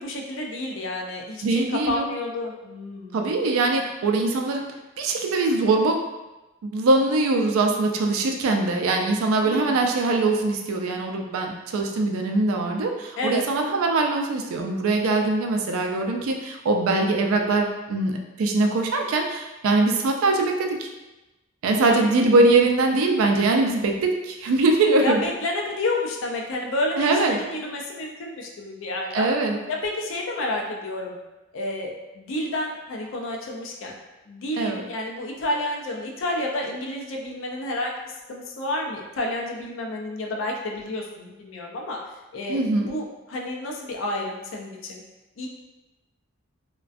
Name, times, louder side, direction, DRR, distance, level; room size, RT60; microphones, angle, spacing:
voice 1, 0.0-3.2 9.4-9.8 13.2-13.5 21.8-22.4 25.0-29.3 29.7-31.2 31.5-33.9 34.3-42.0 42.3-45.0 45.4-45.5, left 1 dB, 65° left, 0 dB, 0.4 m, -30 dB
voice 2, 1.4-2.0 3.1-4.7 5.0-6.0 6.7-20.9 21.6-25.2 27.0-27.4 29.1-29.6 34.6-34.8 42.5-42.9, right 2 dB, 85° right, 3 dB, 0.4 m, -22 dB
2.4 x 2.2 x 2.4 m, 1.0 s
head